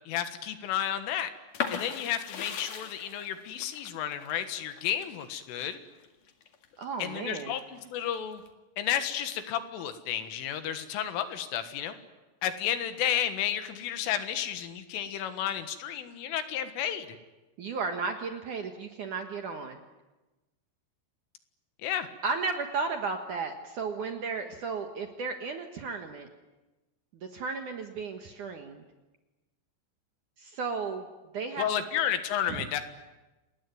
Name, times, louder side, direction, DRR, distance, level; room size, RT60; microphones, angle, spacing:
voice 1, 0.1-1.3 1.7-5.8 7.0-8.4 8.8-12.0 12.4-17.1 21.8-22.1 31.6-32.8, left 10 dB, 75° left, 9 dB, 4.0 m, -32 dB
sound 1, 1.5-7.2 7.6-8.5, left 7 dB, 50° left, 2.8 m, -38 dB
voice 2, 6.8-7.6 17.6-19.8 22.2-26.3 27.1-28.8 30.4-31.1 31.3-31.6 32.5-32.7, right 4 dB, 70° right, 5 dB, 1.9 m, -34 dB
28.0 x 20.0 x 9.4 m, 1.1 s
omnidirectional pair, 5.8 m